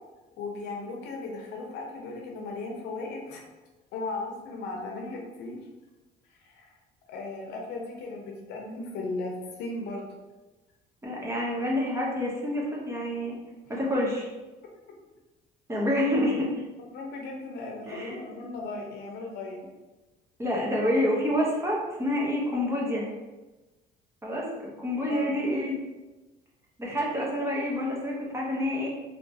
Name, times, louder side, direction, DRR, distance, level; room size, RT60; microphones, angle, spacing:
voice 1, 0.4-3.4 3.9-5.6 6.4-6.7 7.1-9.3 9.6-10.1 16.9-19.6 25.1-25.3, left 3 dB, 85° left, 0 dB, 0.7 m, -36 dB
voice 2, 11.0-13.3 13.7-14.3 15.7-16.5 17.9-18.2 20.4-23.1 24.2-25.8 26.8-28.9, left 1 dB, 15° right, -4 dB, 0.9 m, -28 dB
3.1 x 3.0 x 2.8 m, 1.1 s
cardioid pair, 110°, 17 cm